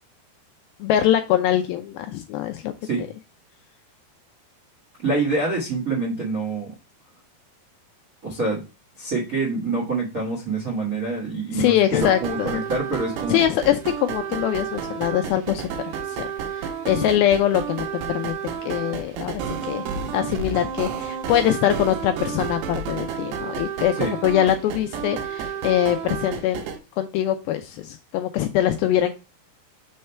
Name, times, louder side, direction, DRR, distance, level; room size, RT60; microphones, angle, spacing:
voice 1, 0.8-2.7 11.5-12.6 13.3-15.7 16.1-17.9 18.1-18.3 18.6-19.9 20.1-24.0 24.2-26.6 27.0-29.1, left 11 dB, 85° left, 7 dB, 2.1 m, -23 dB
voice 2, 5.0-6.7 8.2-8.6 9.0-13.4 24.0-24.1, right 3 dB, 65° right, -3 dB, 0.8 m, -26 dB
sound 1, 12.0-26.8, right 7 dB, 85° right, 2.9 m, -31 dB
6.4 x 3.3 x 5.5 m, 0.32 s
omnidirectional pair, 4.7 m